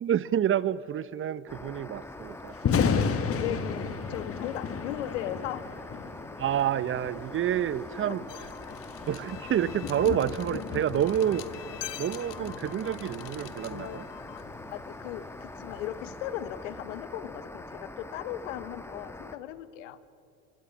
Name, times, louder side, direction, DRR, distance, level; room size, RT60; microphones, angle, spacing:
voice 1, 0.0-2.5 6.4-8.2 9.1-11.5 12.0-14.1, right 10 dB, 35° right, 18 dB, 0.7 m, -28 dB
sound 1, 1.5-19.4, left 2 dB, 5° left, 1.2 m, -44 dB
Thunder, 2.5-16.6, left 6 dB, 40° left, 1.8 m, -35 dB
voice 2, 3.1-5.6 8.0-8.2 14.7-20.0, left 12 dB, 80° left, 15 dB, 1.1 m, -37 dB
sound 2, 8.3-14.5, left 15 dB, 60° left, 1.2 m, -44 dB
25.0 x 24.0 x 6.2 m, 2.6 s
hypercardioid pair, 85°, 36 cm